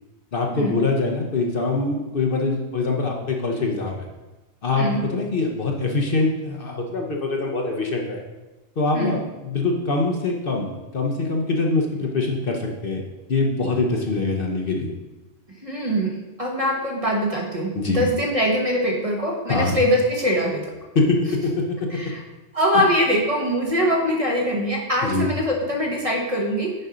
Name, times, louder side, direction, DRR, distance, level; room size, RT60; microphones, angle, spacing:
voice 1, 0.3-4.1 4.6-8.2 8.8-13.0 13.3-14.9 17.7-18.0 19.5-19.8 20.9-21.9 25.0-25.3, left 3 dB, 50° left, 1 dB, 1.0 m, -23 dB
voice 2, 15.6-20.7 21.9-22.2 22.5-26.7, equal, 30° right, -1 dB, 1.1 m, -23 dB
6.6 x 5.3 x 5.0 m, 1.1 s
omnidirectional pair, 1.3 m